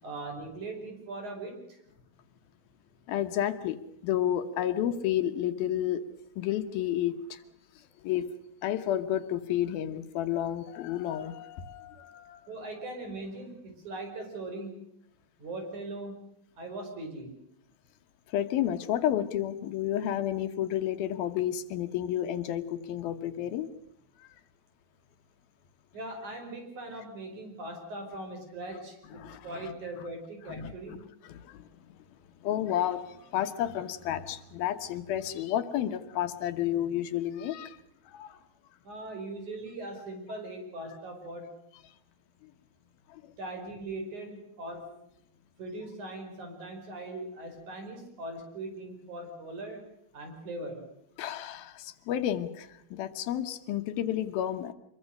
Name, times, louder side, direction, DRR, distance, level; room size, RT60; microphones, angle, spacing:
voice 1, 0.0-1.8 12.5-14.9 15.4-16.2 16.6-17.3 25.9-31.0 38.8-41.5 43.4-45.0 45.6-49.9 50.1-50.9, right 2 dB, 50° right, 6.2 m, -40 dB
voice 2, 3.1-3.8 4.0-6.0 6.4-7.4 8.0-8.3 8.6-12.4 18.3-23.7 29.1-29.7 30.5-31.0 31.2-31.6 32.4-37.8 38.1-38.4 42.4-42.5 43.1-43.2 51.2-54.7, left 11 dB, 75° left, 2.9 m, -31 dB
25.5 x 22.5 x 6.6 m
omnidirectional pair, 4.4 m